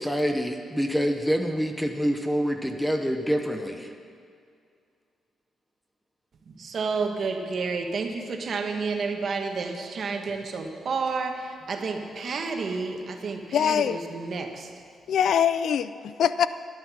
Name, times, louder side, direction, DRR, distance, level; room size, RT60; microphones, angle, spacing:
voice 1, 0.0-3.9, equal, ahead, 5 dB, 0.7 m, -26 dB
voice 2, 6.5-14.7, right 4 dB, 40° right, 4 dB, 1.2 m, -30 dB
voice 3, 13.5-14.0 15.1-16.5, left 8 dB, 60° left, 14 dB, 0.3 m, -23 dB
11.5 x 11.5 x 6.1 m, 2.3 s
wide cardioid pair, 170°, 0 cm